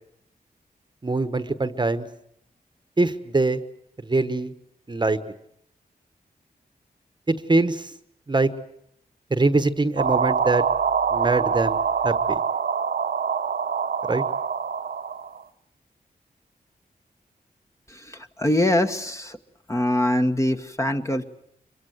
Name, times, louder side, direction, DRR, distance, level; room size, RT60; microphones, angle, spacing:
voice 1, 1.0-2.1 3.0-3.6 4.0-4.5 4.9-5.2 7.3-7.9 8.3-8.5 9.3-10.6 11.1-11.8 12.0-12.4 14.1-14.2, right 3 dB, 30° right, 11 dB, 1.2 m, -23 dB
sound 1, 10.0-15.4, right 6 dB, 75° right, 1.1 m, -25 dB
voice 2, 17.9-19.4 19.7-21.2, left 1 dB, 20° left, 6 dB, 1.4 m, -23 dB
25.0 x 22.5 x 8.0 m, 0.72 s
wide cardioid pair, 90°, 16 cm